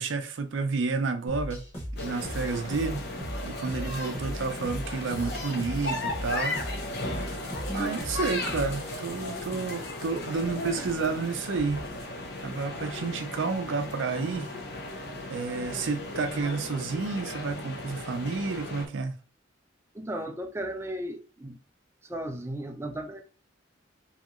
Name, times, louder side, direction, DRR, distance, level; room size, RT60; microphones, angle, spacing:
voice 1, 0.0-1.6 1.9-3.0 3.4-6.6 7.2-7.3 7.7-12.2 12.4-14.5 15.3-19.1, right 4 dB, 75° right, 0.5 m, -30 dB
sound 1, 1.3-8.9, equal, 30° left, 1.1 m, -37 dB
sound 2, 2.0-18.9, left 2 dB, 55° left, 0.7 m, -36 dB
voice 2, 19.9-21.6 22.0-23.2, right 1 dB, 15° right, 0.3 m, -35 dB
2.9 x 2.8 x 2.4 m
head